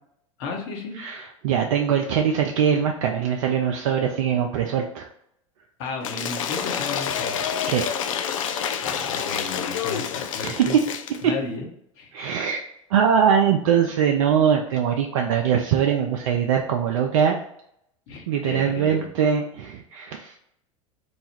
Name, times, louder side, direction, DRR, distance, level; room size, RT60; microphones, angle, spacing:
voice 1, 0.4-1.0 5.8-7.5 8.8-10.8 11.2-11.7 12.0-12.1 18.1-19.1, left 4 dB, 55° left, 1 dB, 1.0 m, -33 dB
voice 2, 1.0-5.1 7.7-7.9 8.5-8.7 10.4-10.8 12.1-12.6 12.9-17.4 18.3-20.4, right 8 dB, 70° right, 2 dB, 0.4 m, -22 dB
Cheering / Applause / Crowd, 6.0-11.2, left 8 dB, 75° left, 0.4 m, -28 dB
3.0 x 2.3 x 4.2 m, 0.74 s
hypercardioid pair, 85°, 17 cm